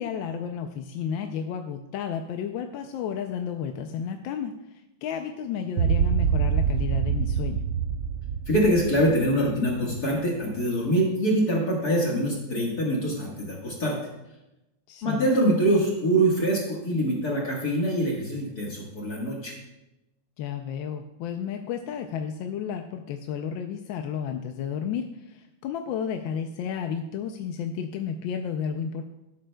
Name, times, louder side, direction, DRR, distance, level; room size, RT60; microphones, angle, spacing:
voice 1, 0.0-4.5 5.0-7.6 14.9-15.3 20.4-29.0, left 7 dB, 85° left, 5 dB, 1.3 m, -32 dB
sound 1, 5.8-10.1, right 7 dB, 75° right, 1.1 m, -26 dB
voice 2, 8.5-14.0 15.0-19.6, right 1 dB, 55° left, -3 dB, 2.1 m, -24 dB
16.5 x 8.8 x 2.2 m, 0.95 s
omnidirectional pair, 2.0 m